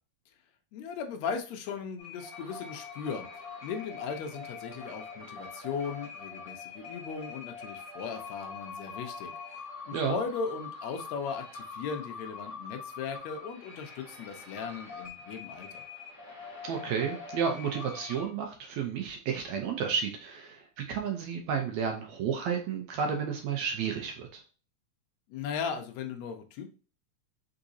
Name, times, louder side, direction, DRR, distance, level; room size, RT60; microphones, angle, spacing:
voice 1, 0.7-15.8 25.3-26.7, left 6 dB, 80° left, 5 dB, 1.6 m, -37 dB
sound 1, 2.0-18.3, left 4 dB, 50° left, 1.0 m, -44 dB
voice 2, 16.6-24.4, right 7 dB, 75° right, 3 dB, 1.7 m, -32 dB
4.7 x 3.9 x 2.6 m, 0.37 s
omnidirectional pair, 3.7 m